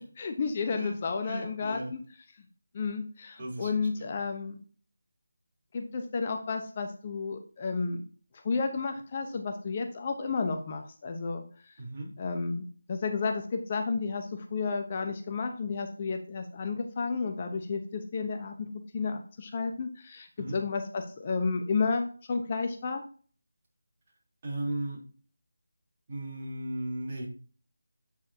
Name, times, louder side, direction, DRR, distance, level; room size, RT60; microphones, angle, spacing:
voice 1, 0.0-2.0 2.7-4.6 5.7-8.0 8.4-11.4 12.2-23.0, left 4 dB, 30° left, 5 dB, 0.9 m, -32 dB
voice 2, 1.2-1.9 3.4-4.1 11.8-12.1 20.4-20.6 24.4-25.0 26.1-27.3, right 1 dB, 35° right, -4 dB, 3.5 m, -36 dB
8.6 x 7.5 x 2.8 m, 0.42 s
figure-of-eight pair, 165°, 0 cm